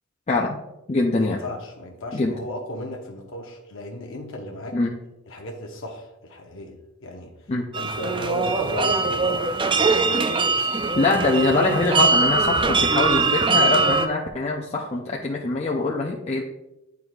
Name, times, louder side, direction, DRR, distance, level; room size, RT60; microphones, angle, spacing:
voice 1, 0.3-0.6 0.9-1.4 2.1-2.4 4.7-4.9 7.5-7.6 11.0-16.4, left 3 dB, 30° left, -1 dB, 0.5 m, -23 dB
voice 2, 1.2-4.8 5.3-9.5, left 1 dB, 65° left, 1 dB, 0.8 m, -35 dB
sound 1, 7.7-14.1, right 4 dB, 25° right, 0.3 m, -21 dB
9.4 x 4.7 x 2.4 m, 0.92 s
head